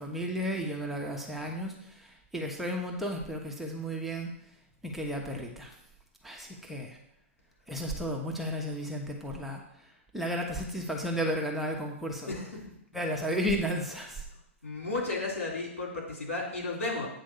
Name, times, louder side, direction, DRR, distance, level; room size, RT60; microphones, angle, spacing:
voice 1, 0.0-4.3 4.8-5.7 6.2-7.0 7.7-9.6 10.1-12.3 12.9-14.2, equal, 5° right, 0 dB, 1.2 m, -33 dB
voice 2, 14.6-17.1, left 3 dB, 80° left, -3 dB, 3.3 m, -33 dB
9.0 x 3.4 x 6.7 m, 0.80 s
hypercardioid pair, 110°, 7 cm